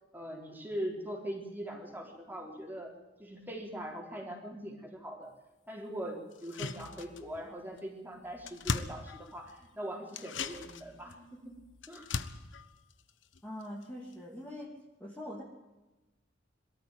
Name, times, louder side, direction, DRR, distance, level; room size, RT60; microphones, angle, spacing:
voice 1, 0.1-2.9 3.2-5.3 5.7-11.6 11.9-12.1, equal, 10° right, 1 dB, 4.1 m, -41 dB
sound 1, 6.3-7.5 7.8-7.9 8.1-9.7 10.1-13.8 14.1-14.2, left 4 dB, 75° left, 1.2 m, -39 dB
voice 2, 13.4-14.7 15.0-15.4, left 1 dB, 10° left, -3 dB, 3.0 m, -43 dB
22.5 x 13.5 x 9.2 m, 1.1 s
head